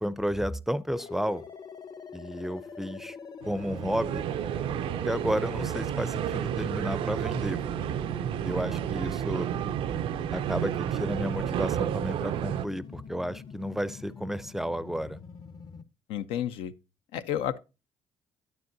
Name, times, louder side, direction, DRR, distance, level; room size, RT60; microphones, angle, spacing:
voice 1, 0.0-1.4 2.1-3.2 3.4-4.2 5.0-7.6 8.4-9.5 10.3-15.2, equal, 5° right, 0.4 m, -32 dB
sound 1, 0.9-15.8, left 6 dB, 45° left, 0.8 m, -44 dB
sound 2, 3.4-12.6, right 11 dB, 70° right, 0.4 m, -31 dB
voice 2, 16.1-16.7 17.1-17.6, left 10 dB, 90° left, 0.5 m, -31 dB
10.5 x 9.0 x 2.6 m
cardioid pair, 85°, 9 cm